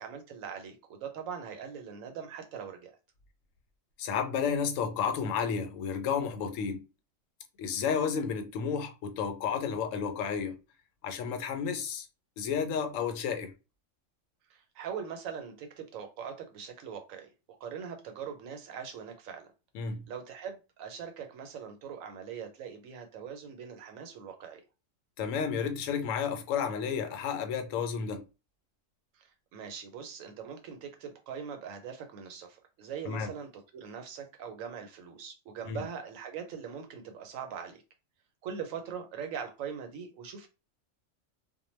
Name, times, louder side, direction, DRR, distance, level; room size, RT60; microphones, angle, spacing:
voice 1, 0.0-2.9 14.5-19.5 20.1-24.6 29.1-37.8 38.4-40.5, right 7 dB, 90° right, 1.0 m, -41 dB
voice 2, 4.0-6.8 7.6-10.6 11.0-12.1 12.4-13.5 19.7-20.0 25.2-28.2 33.1-33.3 35.7-35.9, left 6 dB, 80° left, 1.0 m, -31 dB
2.2 x 2.1 x 3.1 m
omnidirectional pair, 1.4 m